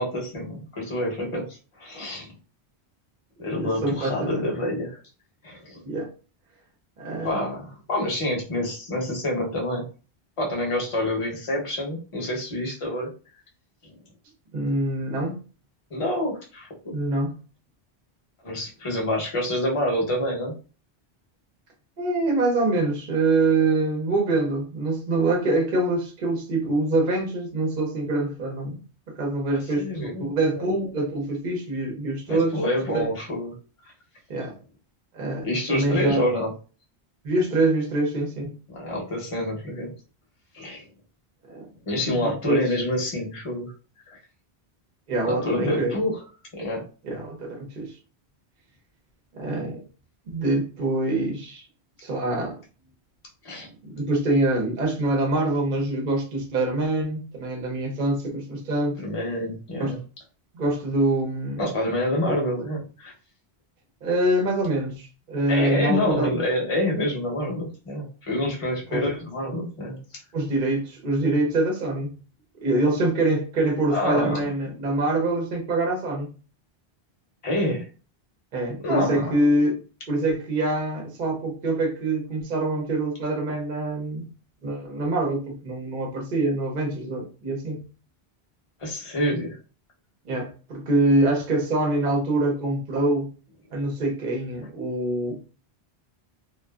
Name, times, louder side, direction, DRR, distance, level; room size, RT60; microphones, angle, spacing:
voice 1, 0.0-2.3 3.4-5.0 5.4-5.8 7.2-9.8 10.4-13.1 15.9-16.7 18.4-20.5 29.5-30.3 30.6-30.9 32.3-33.5 35.4-36.5 38.7-39.9 40.5-40.8 41.9-43.7 44.1-44.2 45.3-46.1 46.5-46.8 53.4-53.7 59.0-60.0 61.6-63.1 65.5-70.0 73.9-74.4 77.4-77.9 78.8-79.4 88.8-89.6, left 1 dB, 35° left, 0.8 m, -27 dB
voice 2, 3.5-4.5 5.8-6.1 7.0-7.4 14.5-15.3 16.9-17.3 22.0-28.8 29.2-32.5 32.9-33.1 34.3-34.5 35.1-36.2 37.2-38.6 41.5-42.8 45.1-46.0 47.0-47.9 49.3-49.8 50.3-51.7 52.0-52.6 53.9-59.0 59.8-59.9 60.5-61.6 62.2-62.3 64.0-66.3 68.9-69.0 70.3-72.2 72.6-76.3 78.5-79.8 80.1-84.2 84.6-87.8 90.2-93.3 93.7-95.4, right 2 dB, 50° right, 0.8 m, -25 dB
2.5 x 2.3 x 2.3 m
omnidirectional pair, 1.1 m